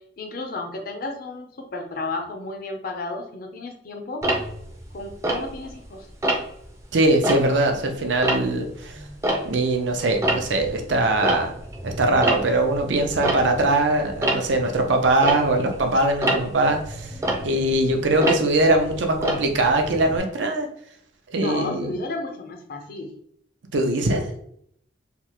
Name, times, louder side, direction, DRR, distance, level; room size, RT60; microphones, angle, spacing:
voice 1, 0.2-4.2 4.9-6.1 21.4-23.1, left 3 dB, 55° left, 4 dB, 0.6 m, -32 dB
Tick-tock, 4.2-5.9 6.2-6.7 7.1-9.8 10.1-20.2, right 1 dB, 15° right, 0.4 m, -28 dB
voice 2, 6.9-9.0 9.4-11.5 11.8-17.1 17.4-20.7 21.3-22.0 23.7-24.3, right 2 dB, 85° right, 4 dB, 0.6 m, -21 dB
3.3 x 2.0 x 2.9 m, 0.69 s
head